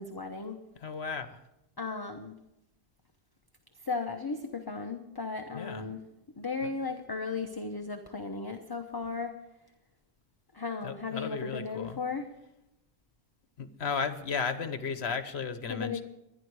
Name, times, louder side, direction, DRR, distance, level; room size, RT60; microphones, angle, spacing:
voice 1, 0.0-0.6 1.8-2.3 3.8-6.0 6.4-9.3 10.5-12.3 15.7-16.0, left 4 dB, 20° left, 4 dB, 0.8 m, -35 dB
voice 2, 0.8-1.4 5.5-5.8 10.8-12.0 13.6-16.0, left 5 dB, 55° left, 10 dB, 1.3 m, -34 dB
24.5 x 10.5 x 4.8 m, 0.88 s
omnidirectional pair, 1.3 m